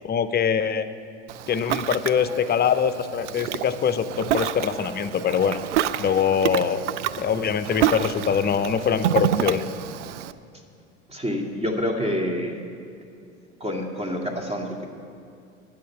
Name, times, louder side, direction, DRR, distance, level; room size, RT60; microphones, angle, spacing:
voice 1, 0.1-0.9 1.5-5.6 6.0-6.8 7.2-9.6, left 7 dB, 30° left, 11 dB, 0.7 m, -23 dB
Ocean, 1.3-10.3, right 10 dB, 85° right, 0.5 m, -28 dB
voice 2, 11.1-12.6 13.6-14.9, equal, 15° right, 1 dB, 2.2 m, -27 dB
10.0 x 8.9 x 8.6 m, 2.5 s
hypercardioid pair, 75°, 35 cm